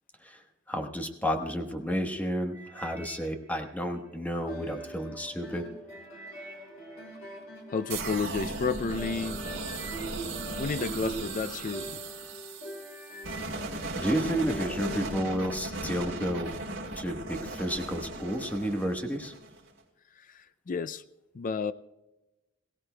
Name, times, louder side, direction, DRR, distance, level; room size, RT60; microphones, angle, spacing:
voice 1, 0.2-5.7 13.9-16.5 17.0-19.3, equal, 10° left, 4 dB, 1.2 m, -31 dB
sound 1, 2.5-4.9 5.4-8.2 8.9-9.1 9.3-11.7 12.2-12.5 12.8-14.3 14.7-15.2 15.8-15.9, right 2 dB, 15° right, 2.9 m, -50 dB
sound 2, 4.4-15.3, right 1 dB, 70° left, 3.8 m, -44 dB
voice 2, 7.7-9.4 10.6-12.0 20.3-21.0 21.3-21.7, left 4 dB, 40° left, 12 dB, 0.4 m, -31 dB
sound 3, 7.9-19.7, right 2 dB, 65° right, 3.0 m, -37 dB
22.0 x 17.0 x 2.2 m, 1.0 s
head